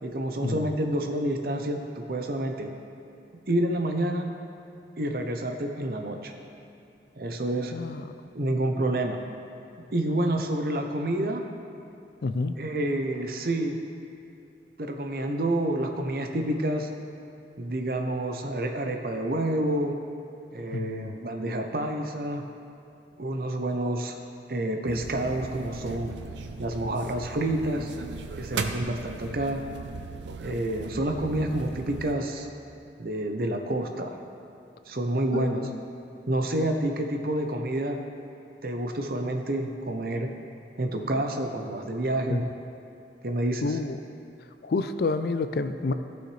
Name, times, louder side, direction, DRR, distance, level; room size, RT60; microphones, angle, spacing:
voice 1, 0.0-2.7 3.5-4.3 5.0-6.3 7.2-7.8 8.3-9.2 9.9-11.4 12.6-13.8 14.8-16.9 17.6-19.9 20.5-22.4 23.2-24.2 24.5-26.1 26.6-27.9 28.4-29.6 30.4-32.5 33.0-34.1 34.9-35.7 36.3-38.0 38.6-40.3 40.8-42.5 43.2-43.8, right 1 dB, 55° right, 4 dB, 0.7 m, -28 dB
voice 2, 7.7-8.0 12.2-12.6 20.7-21.1 35.3-35.8 42.3-42.4 43.6-44.0 44.6-45.9, left 3 dB, 60° left, 10 dB, 0.4 m, -29 dB
sound 1, 24.9-32.1, right 3 dB, 90° right, 0.5 m, -37 dB
14.5 x 6.4 x 3.3 m, 2.7 s
head